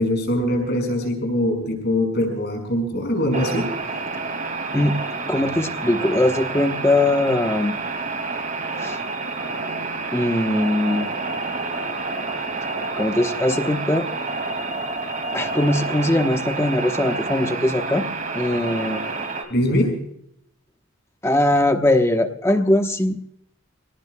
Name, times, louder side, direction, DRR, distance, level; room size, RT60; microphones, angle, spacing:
voice 1, 0.0-3.7 19.5-20.0, left 1 dB, 50° left, 3 dB, 5.8 m, -22 dB
sound 1, 3.3-19.4, right 3 dB, 40° right, 2.3 m, -29 dB
voice 2, 5.3-7.8 8.8-9.0 10.1-11.1 13.0-14.1 15.3-18.1 18.3-19.0 21.2-23.3, left 1 dB, 15° left, 6 dB, 1.0 m, -20 dB
26.0 x 18.0 x 2.2 m, 0.72 s
head